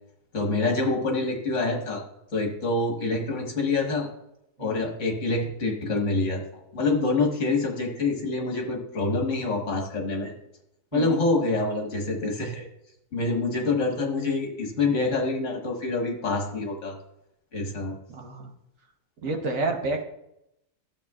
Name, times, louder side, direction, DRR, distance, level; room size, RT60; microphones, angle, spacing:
voice 1, 0.3-2.0 2.3-4.1 4.6-6.4 6.7-10.3 10.9-12.7 13.1-16.9 17.5-17.9, left 3 dB, 50° left, 1 dB, 1.7 m, -26 dB
voice 2, 18.1-18.5 19.2-20.0, right 2 dB, 60° right, 2 dB, 1.5 m, -29 dB
12.5 x 7.6 x 2.4 m, 0.83 s
omnidirectional pair, 1.7 m